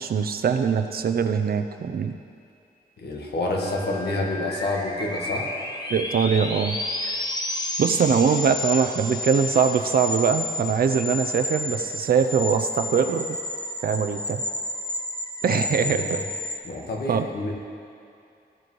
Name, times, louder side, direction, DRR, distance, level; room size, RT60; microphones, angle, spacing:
voice 1, 0.0-2.1 5.9-6.8 7.0-7.2 7.8-13.4 13.8-14.4 15.4-16.2 17.1-17.3, right 6 dB, 65° right, 8 dB, 0.5 m, -22 dB
voice 2, 3.0-5.5 15.5-16.2 16.6-17.5, left 2 dB, 80° left, -1 dB, 1.5 m, -28 dB
sound 1, 3.6-16.6, left 2 dB, 25° left, 0.8 m, -31 dB
15.0 x 7.5 x 3.1 m, 2.6 s
wide cardioid pair, 130°, 17 cm